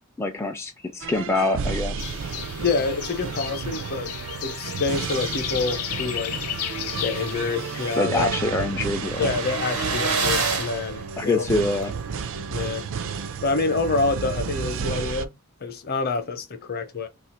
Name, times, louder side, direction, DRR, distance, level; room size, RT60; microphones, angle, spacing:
voice 1, 0.2-2.1 8.0-9.3 11.2-11.9, left 2 dB, 10° left, 0.3 m, -25 dB
sound 1, 1.0-15.3, right 5 dB, 65° right, 0.4 m, -32 dB
sound 2, 2.0-8.0, left 10 dB, 80° left, 0.5 m, -34 dB
voice 2, 2.6-4.1 4.4-6.4 7.0-8.3 9.2-11.5 12.5-12.9 13.4-15.3 15.6-17.1, left 3 dB, 45° left, 0.7 m, -27 dB
sound 3, 6.3-6.4 6.7-6.8 6.9-11.8, right 4 dB, 85° right, 1.1 m, -30 dB
2.8 x 2.5 x 4.2 m
head